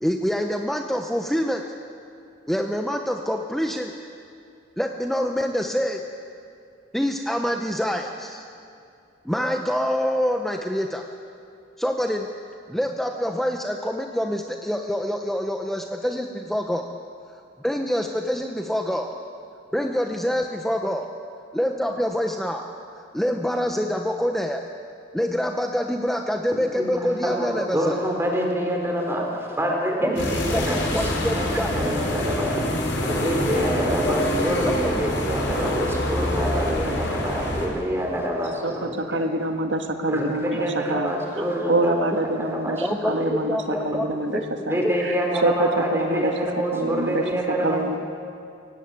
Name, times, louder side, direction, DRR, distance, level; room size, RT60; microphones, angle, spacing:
voice 1, 0.0-1.6 2.5-3.9 4.8-6.0 6.9-8.5 9.2-11.1 11.8-12.3 12.7-16.9 17.6-19.1 19.7-21.1 21.5-22.7 23.1-24.7 25.1-28.0 30.0-30.6 30.9-31.8 42.8-43.1 43.5-44.4 44.8-44.9, equal, ahead, 3 dB, 0.8 m, -26 dB
voice 2, 26.8-32.6 33.0-39.2 40.1-42.0 42.2-43.3 44.7-47.8, equal, 15° right, 0 dB, 3.9 m, -27 dB
sound 1, 30.2-37.7, left 1 dB, 75° left, 4.9 m, -26 dB
voice 3, 38.6-46.3 46.7-47.2 47.6-48.0, right 1 dB, 75° right, 5 dB, 1.6 m, -26 dB
24.0 x 18.0 x 9.0 m, 2.5 s
head